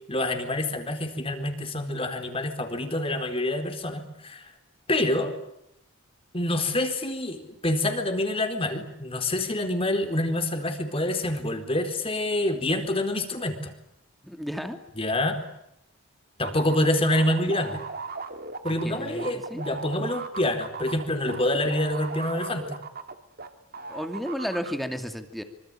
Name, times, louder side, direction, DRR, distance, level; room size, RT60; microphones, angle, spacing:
voice 1, 0.1-4.5 4.9-5.3 6.3-13.7 15.0-15.4 16.4-17.8 18.6-22.8, left 1 dB, 25° left, 6 dB, 4.2 m, -27 dB
voice 2, 14.2-14.8 18.7-19.6 23.9-25.4, equal, ahead, 6 dB, 2.4 m, -33 dB
sound 1, 16.4-23.5 23.7-24.7, right 4 dB, 45° right, 2.2 m, -37 dB
26.0 x 25.5 x 8.9 m, 0.79 s
head